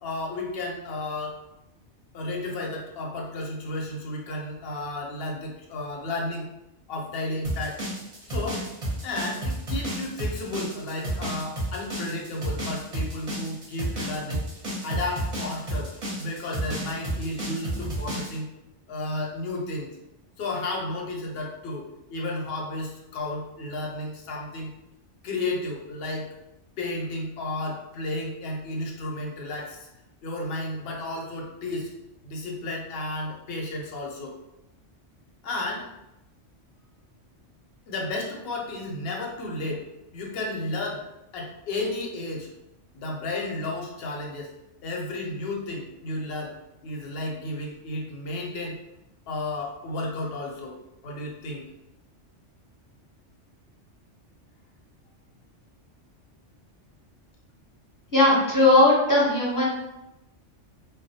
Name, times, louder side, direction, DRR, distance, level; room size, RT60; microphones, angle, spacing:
voice 1, 0.0-1.4 2.1-6.5 6.9-7.8 8.3-8.6 9.0-14.4 14.8-15.9 16.2-18.5 18.9-19.9 20.4-21.8 22.1-24.7 25.2-26.3 26.8-29.8 30.2-31.9 32.2-34.3 35.4-35.8 37.9-39.9 40.1-41.0 41.3-42.5 42.9-44.5 44.8-46.5 46.8-48.8 49.3-50.8 51.0-51.7, left 2 dB, 65° left, 0 dB, 0.7 m, -32 dB
sound 1, 7.4-18.4, right 1 dB, 40° right, 0.6 m, -31 dB
voice 2, 58.1-59.6, left 1 dB, 20° left, -7 dB, 0.6 m, -18 dB
2.2 x 2.1 x 2.7 m, 0.89 s
omnidirectional pair, 1.2 m